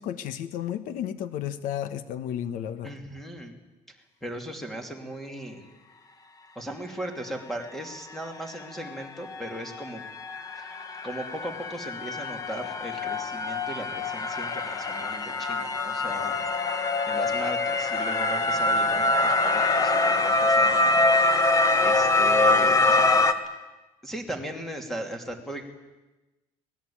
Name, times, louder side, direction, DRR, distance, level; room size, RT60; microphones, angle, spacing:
voice 1, 0.0-2.9, left 10 dB, 80° left, 13 dB, 1.2 m, -32 dB
voice 2, 2.8-3.5 3.9-4.0 4.2-5.7 6.5-10.0 10.6-10.7 11.0-16.4 17.1-21.3 21.8-23.3 24.0-25.6, right 1 dB, ahead, 4 dB, 2.9 m, -37 dB
sound 1, 8.8-8.9 9.2-23.3, left 2 dB, 25° left, 1.4 m, -24 dB
24.5 x 19.5 x 8.8 m, 1.1 s
cardioid pair, 170°, 14 cm